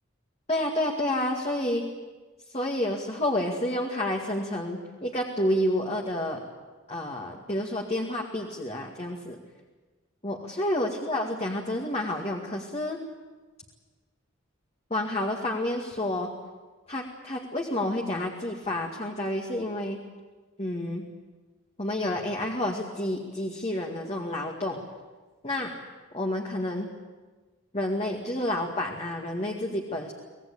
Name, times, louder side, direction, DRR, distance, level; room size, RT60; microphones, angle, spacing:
voice 1, 0.5-1.9 2.5-6.4 6.9-9.4 10.2-13.0 14.9-16.3 16.9-20.0 20.6-21.1 21.8-24.8 25.4-25.8 26.1-26.9 27.7-30.1, left 1 dB, 30° left, 0 dB, 2.2 m, -29 dB
25.0 x 19.0 x 8.5 m, 1.3 s
head